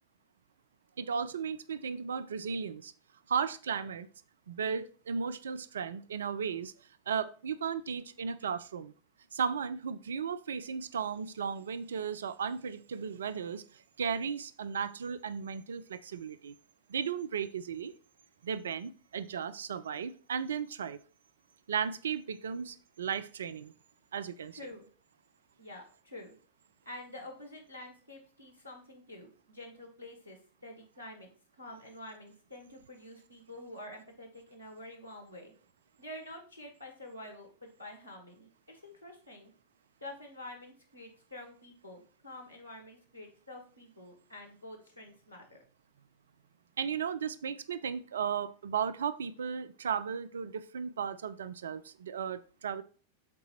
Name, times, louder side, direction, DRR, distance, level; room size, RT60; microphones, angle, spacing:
voice 1, 1.0-2.9 3.3-4.1 4.5-6.7 7.1-8.9 9.3-16.5 16.9-17.9 18.4-21.0 21.7-23.7 24.1-24.6 46.8-52.8, right 7 dB, 65° right, 14 dB, 0.4 m, -35 dB
voice 2, 24.5-24.9 25.6-26.3 26.8-31.3 31.6-35.5 36.0-39.5 40.0-45.6, left 1 dB, 85° right, 3 dB, 1.6 m, -48 dB
7.5 x 3.9 x 4.3 m, 0.41 s
figure-of-eight pair, 90°, 0 cm